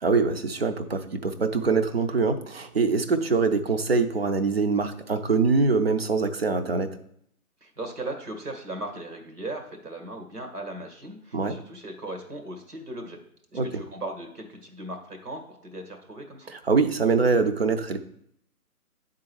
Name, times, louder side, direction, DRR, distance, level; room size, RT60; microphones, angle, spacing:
voice 1, 0.0-7.0 11.3-11.6 13.5-13.7 16.5-18.0, right 4 dB, 45° right, 8 dB, 0.6 m, -24 dB
voice 2, 7.6-13.2 13.5-16.5, right 1 dB, 85° right, 3 dB, 1.9 m, -38 dB
9.6 x 3.7 x 4.7 m, 0.70 s
figure-of-eight pair, 140°, 45 cm